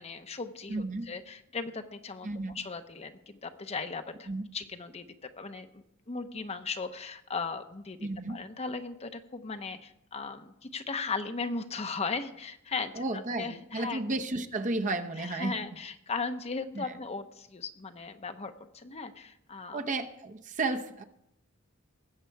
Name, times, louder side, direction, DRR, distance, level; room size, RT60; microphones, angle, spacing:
voice 1, 0.0-2.3 2.5-8.0 8.3-13.0 13.3-14.0 15.2-19.8, left 4 dB, 30° left, 8 dB, 0.7 m, -37 dB
voice 2, 0.7-1.1 2.2-2.5 4.3-4.4 8.0-8.4 12.9-15.5 16.7-16.8 19.7-21.0, right 2 dB, 35° right, 6 dB, 0.8 m, -33 dB
20.0 x 8.1 x 4.6 m, 0.81 s
head